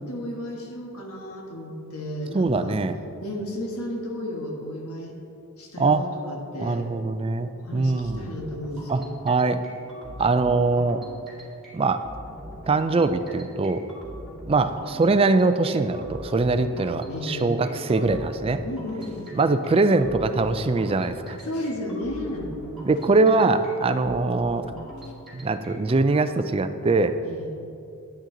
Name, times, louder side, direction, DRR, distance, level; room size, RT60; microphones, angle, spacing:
voice 1, 0.0-2.8 3.2-5.1 5.6-6.9 7.5-9.2 17.1-17.6 18.6-19.3 21.4-22.5 27.2-27.5, left 1 dB, 85° left, 1 dB, 1.5 m, -33 dB
voice 2, 2.3-2.9 5.8-6.0 6.6-8.3 8.9-9.6 10.2-11.0 11.7-12.0 12.7-13.8 14.5-18.6 19.3-21.4 22.8-24.7 25.3-27.2, right 3 dB, 25° right, 10 dB, 0.3 m, -22 dB
sound 1, 7.9-26.0, equal, ahead, 2.0 m, -42 dB
9.9 x 9.1 x 3.9 m, 2.7 s
head